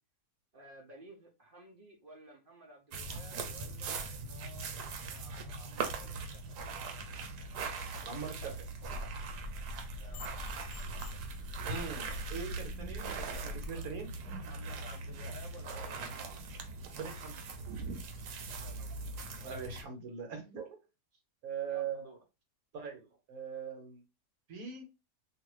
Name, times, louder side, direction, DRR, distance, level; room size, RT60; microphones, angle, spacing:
voice 1, 0.5-4.8 5.1-6.2 6.5-6.6 10.0-11.2 14.4-16.4 18.6-18.9 19.5-19.6 21.7-22.2, right 1 dB, 50° right, 0 dB, 0.7 m, -55 dB
sound 1, 2.9-19.8, right 3 dB, 90° right, 1.2 m, -41 dB
voice 2, 8.0-8.7 11.7-14.1 16.9-17.4 19.4-20.7 21.4-22.1 22.7-24.0 24.5-24.9, right 7 dB, 65° right, 3 dB, 1.4 m, -41 dB
sound 2, 8.4-14.3, equal, 85° left, 0.5 m, -53 dB
sound 3, 8.8-13.7, left 2 dB, 65° left, 0.9 m, -45 dB
2.8 x 2.5 x 3.0 m, 0.27 s
omnidirectional pair, 1.7 m